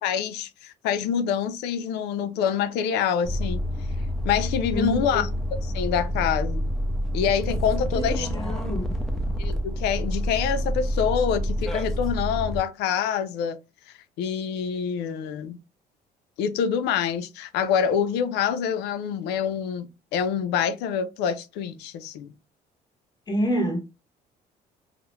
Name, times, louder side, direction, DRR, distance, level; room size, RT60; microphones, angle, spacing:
voice 1, 0.0-3.6 4.2-5.3 5.6-6.6 7.1-8.3 9.4-13.6 14.2-15.6 16.4-22.3, left 7 dB, 90° left, 0.4 m, -26 dB
sound 1, 3.2-12.6, equal, ahead, 0.5 m, -28 dB
voice 2, 4.7-5.2 8.0-8.9 23.3-23.8, equal, 25° left, 0.9 m, -28 dB
2.4 x 2.0 x 2.9 m
cardioid pair, 110°, 17 cm